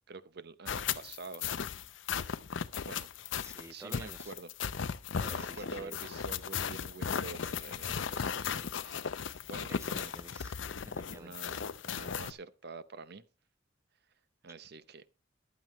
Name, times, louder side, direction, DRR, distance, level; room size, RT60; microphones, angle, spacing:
voice 1, 0.1-1.6 2.8-3.1 3.7-4.5 5.2-10.1 11.1-13.2 14.4-15.1, right 4 dB, 55° right, 0.7 m, -47 dB
sound 1, 0.7-12.3, left 7 dB, 70° left, 0.6 m, -36 dB
voice 2, 3.3-4.3 5.2-6.0 9.7-11.4, right 2 dB, 15° right, 0.6 m, -51 dB
14.5 x 11.0 x 3.0 m
head